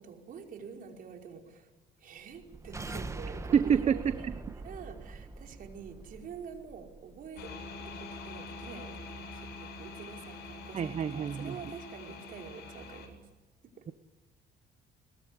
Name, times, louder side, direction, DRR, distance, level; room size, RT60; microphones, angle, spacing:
voice 1, 0.0-1.7 2.0-13.2 13.8-13.9, right 6 dB, 55° right, 3 dB, 5.2 m, -47 dB
sound 1, 2.3-7.4, right 3 dB, 15° right, 1.4 m, -43 dB
voice 2, 3.5-4.0 10.7-11.5, right 7 dB, 40° right, 13 dB, 1.0 m, -26 dB
sound 2, 7.4-13.1, left 3 dB, 75° left, 7.7 m, -45 dB
22.5 x 22.0 x 9.9 m, 1.2 s
cardioid pair, 110°, 17 cm